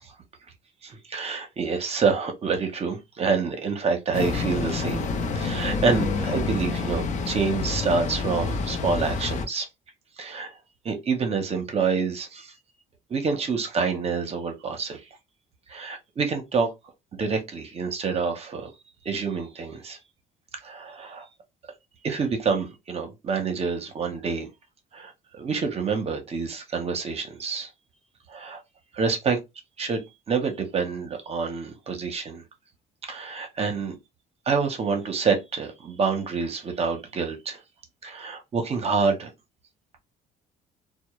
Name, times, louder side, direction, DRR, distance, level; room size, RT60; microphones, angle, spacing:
voice 1, 0.8-5.1 5.3-9.7 10.2-10.5 10.8-12.5 13.1-15.0 15.7-16.7 17.1-18.7 19.0-20.0 20.6-21.3 22.0-24.5 24.9-27.7 28.3-28.6 28.9-29.4 29.8-32.4 33.0-33.9 34.5-37.6 38.0-39.3, right 5 dB, 35° right, 0.7 m, -27 dB
sound 1, 4.1-9.5, left 4 dB, 45° left, 0.5 m, -28 dB
2.1 x 2.1 x 2.9 m
cardioid pair, 110°, 17 cm